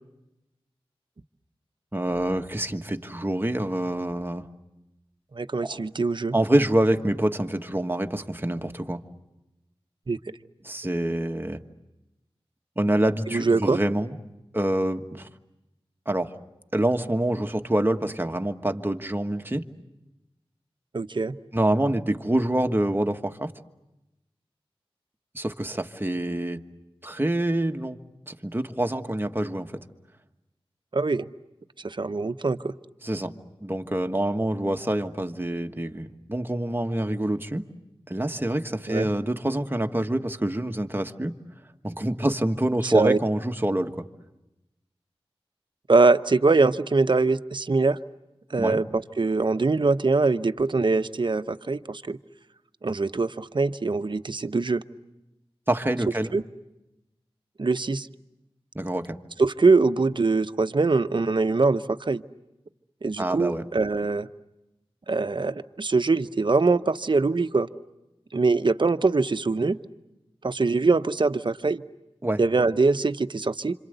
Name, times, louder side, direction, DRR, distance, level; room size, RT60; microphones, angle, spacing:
voice 1, 1.9-4.5 5.6-5.8 6.3-9.0 10.6-11.6 12.8-14.2 14.5-15.3 16.1-16.4 16.7-19.6 21.5-23.5 25.3-26.6 27.0-28.0 28.3-29.7 33.0-33.3 33.6-37.6 38.1-41.3 41.8-44.1 48.6-48.8 55.7-56.3 58.7-59.2 63.2-63.6 72.2-72.4, right 1 dB, 20° right, 6 dB, 1.5 m, -26 dB
voice 2, 5.3-6.4 10.1-10.2 13.3-13.8 20.9-21.3 30.9-31.2 31.8-32.7 38.9-39.1 42.8-43.2 45.9-48.0 48.5-52.2 52.8-54.8 56.3-56.4 57.6-58.1 59.4-62.2 63.0-64.3 65.1-67.7 68.3-69.8 70.4-71.8 72.4-73.7, right 3 dB, 50° right, 10 dB, 0.9 m, -23 dB
27.0 x 27.0 x 8.1 m, 0.97 s
wide cardioid pair, 60°, 10 cm